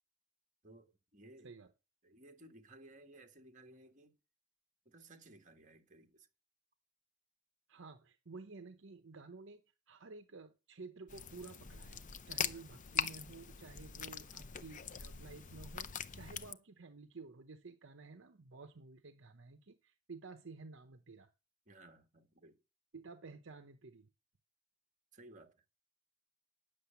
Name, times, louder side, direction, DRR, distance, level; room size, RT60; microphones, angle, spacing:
voice 1, 0.6-1.5 2.0-4.2 4.8-6.3 12.5-12.7 21.7-22.6 25.1-25.5, right 2 dB, 40° right, 1.8 m, -58 dB
voice 2, 7.7-21.3 22.9-24.1, right 4 dB, 65° right, 0.8 m, -53 dB
sound 1, 11.1-16.5, left 7 dB, 40° left, 0.6 m, -42 dB
9.8 x 6.7 x 7.1 m
head